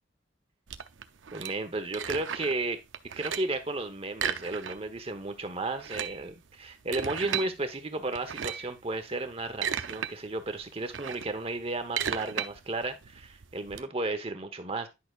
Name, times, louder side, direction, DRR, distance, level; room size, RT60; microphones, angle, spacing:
sound 1, 0.7-2.6 2.9-3.6 4.1-5.0 5.3-5.4 5.7-7.5 8.1-8.8 9.3-10.1 10.5-13.8, right 8 dB, 85° right, 0.7 m, -35 dB
voice 1, 1.3-2.8 3.2-14.9, right 2 dB, 30° right, 8 dB, 1.1 m, -33 dB
10.5 x 6.1 x 2.5 m, 0.23 s
head